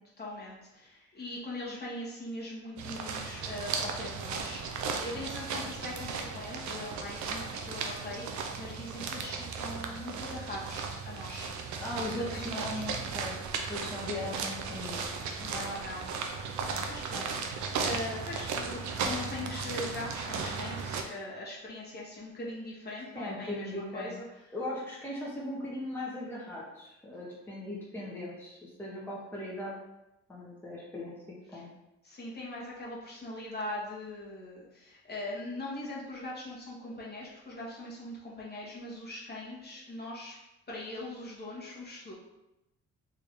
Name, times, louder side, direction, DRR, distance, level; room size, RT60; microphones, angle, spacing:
voice 1, 0.2-11.5 12.0-12.8 15.4-17.4 17.8-24.2 31.5-31.6 32.0-40.4 40.7-42.1, left 1 dB, 35° left, -4 dB, 1.2 m, -41 dB
sound 1, 2.8-21.0, right 5 dB, 70° right, 0.6 m, -36 dB
voice 2, 11.8-13.4 13.7-15.2 23.1-24.1 24.5-29.7 30.3-31.1 31.5-31.7, left 1 dB, 5° left, -6 dB, 0.9 m, -38 dB
3.4 x 2.7 x 3.5 m, 0.93 s
cardioid pair, 90°, 30 cm